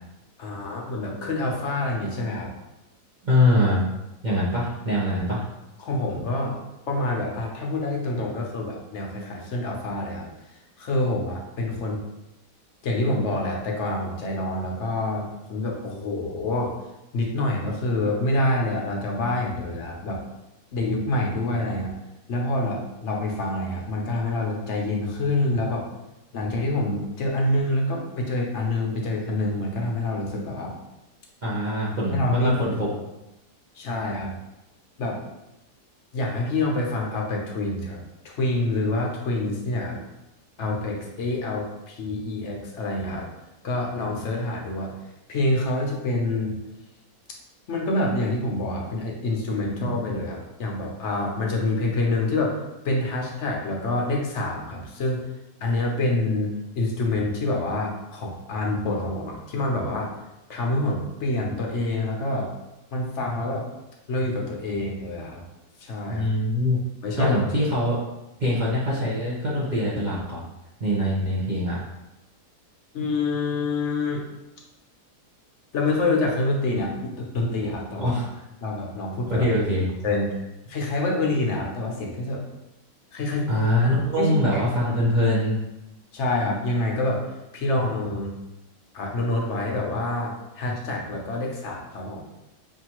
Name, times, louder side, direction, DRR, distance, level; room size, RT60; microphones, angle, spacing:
voice 1, 0.4-2.5 5.8-6.6 6.9-10.3 10.8-12.0 12.8-16.7 17.1-20.2 20.7-21.9 22.3-25.9 26.3-30.8 32.1-32.5 33.8-34.3 35.0-35.2 36.1-40.0 40.6-43.3 43.6-44.9 45.3-46.6 47.7-52.6 52.8-55.2 55.6-60.1 60.5-62.5 62.9-63.6 64.1-65.4 65.8-66.3 67.0-67.4 72.9-74.2 75.7-78.1 78.6-79.4 80.0-82.4 83.1-83.5 84.1-84.9 86.1-88.4 88.9-92.4, left 2 dB, 55° left, -1 dB, 0.9 m, -27 dB
voice 2, 3.2-3.8 4.2-5.4 31.4-32.9 66.1-66.8 67.2-68.0 68.4-70.4 70.8-71.8 78.0-78.3 79.3-79.8 83.5-85.6, left 1 dB, 45° right, -7 dB, 0.6 m, -23 dB
5.5 x 2.7 x 3.0 m, 0.94 s
omnidirectional pair, 1.7 m